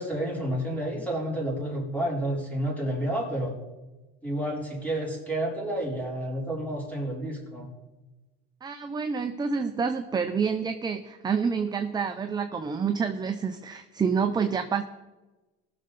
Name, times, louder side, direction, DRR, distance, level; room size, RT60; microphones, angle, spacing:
voice 1, 0.0-3.5 4.2-7.7, right 1 dB, 5° left, -4 dB, 3.9 m, -30 dB
voice 2, 8.6-14.8, right 6 dB, 15° right, 7 dB, 0.5 m, -28 dB
19.5 x 6.6 x 4.0 m, 1.1 s
cardioid pair, 140°, 31 cm